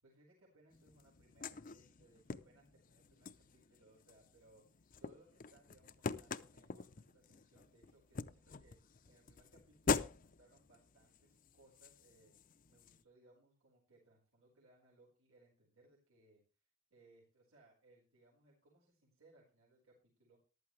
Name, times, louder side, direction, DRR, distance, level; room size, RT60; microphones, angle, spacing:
voice 1, 0.0-12.3 12.7-20.4, right 2 dB, 85° right, -4 dB, 4.9 m, -68 dB
sound 1, 0.7-13.0, left 4 dB, 40° left, 0.6 m, -44 dB
14.5 x 12.0 x 3.3 m, 0.33 s
head